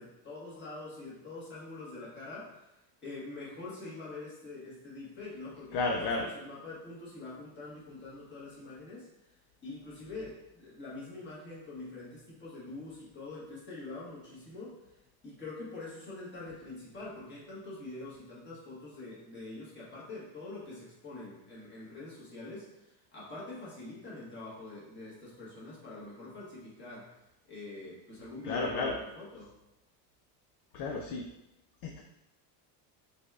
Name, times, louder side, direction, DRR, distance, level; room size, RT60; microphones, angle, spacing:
voice 1, 0.0-9.3 9.6-14.8 15.2-27.1 27.5-29.5, left 2 dB, 25° left, -7 dB, 1.4 m, -45 dB
voice 2, 5.7-6.3 28.4-29.0 30.7-31.3 31.8-32.0, left 3 dB, 50° left, 1 dB, 0.5 m, -32 dB
4.1 x 3.4 x 2.4 m, 0.92 s
cardioid pair, 145°, 48 cm